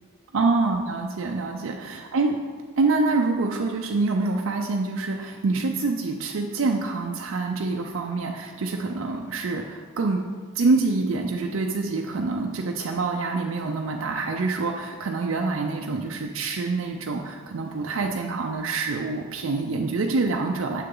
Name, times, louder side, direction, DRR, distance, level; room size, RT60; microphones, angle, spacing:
voice 1, 0.3-2.4 2.8-10.2 10.5-20.8, right 3 dB, 80° right, 2 dB, 0.5 m, -26 dB
6.7 x 6.5 x 3.8 m, 1.5 s
head